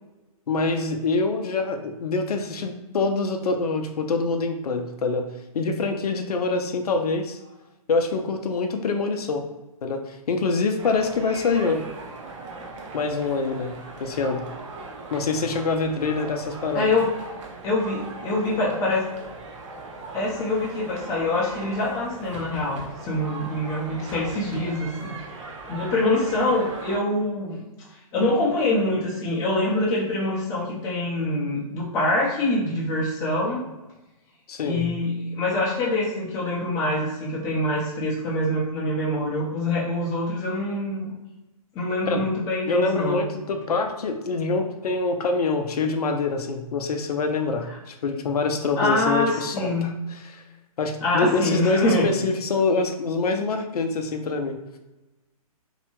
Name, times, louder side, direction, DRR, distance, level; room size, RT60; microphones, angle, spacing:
voice 1, 0.5-5.3 5.5-7.4 7.9-9.5 9.8-11.8 12.9-14.5 15.1-16.9 34.5-34.9 42.1-42.3 42.7-49.9 50.3-50.4 50.8-54.6, left 3 dB, 85° left, 5 dB, 0.5 m, -25 dB
sound 1, 10.8-27.0, right 3 dB, 55° right, 0.6 m, -39 dB
voice 2, 16.7-17.1 17.6-19.1 20.1-27.6 28.1-33.6 34.6-41.1 41.7-43.2 47.7-47.8 48.8-49.9 51.0-52.1, left 1 dB, 15° left, -5 dB, 0.5 m, -25 dB
2.7 x 2.1 x 2.8 m, 1.0 s
hypercardioid pair, 145°, 19 cm